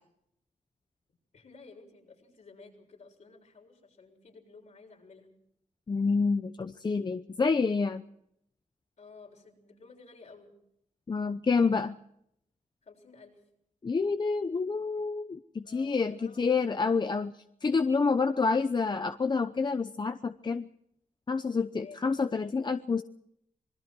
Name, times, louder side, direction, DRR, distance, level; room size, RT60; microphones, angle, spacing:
voice 1, 1.3-5.3 9.0-10.5 12.8-13.4 15.6-16.5 17.8-18.2 21.8-22.0, left 4 dB, 60° left, 2 dB, 6.9 m, -53 dB
voice 2, 5.9-8.0 11.1-12.0 13.8-17.3 17.6-20.7 21.3-23.0, left 4 dB, 35° left, 9 dB, 0.8 m, -28 dB
26.5 x 22.0 x 4.6 m, 0.74 s
wide cardioid pair, 130°, 13 cm